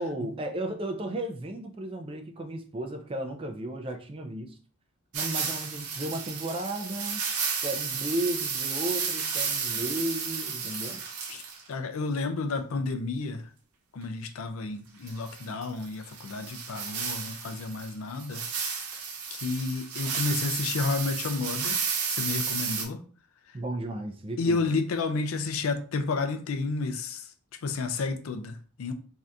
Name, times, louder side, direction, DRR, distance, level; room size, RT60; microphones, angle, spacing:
voice 1, 0.0-4.6 5.1-7.2 7.6-11.0 23.5-24.6, right 1 dB, 25° right, 0.3 m, -34 dB
sound 1, 5.1-11.6 15.1-22.8, right 6 dB, 85° right, 0.6 m, -32 dB
voice 2, 11.7-13.4 13.9-18.4 19.3-21.8 22.1-23.0 24.4-27.2 27.6-28.9, left 3 dB, 70° left, 0.4 m, -31 dB
2.7 x 2.4 x 3.3 m
head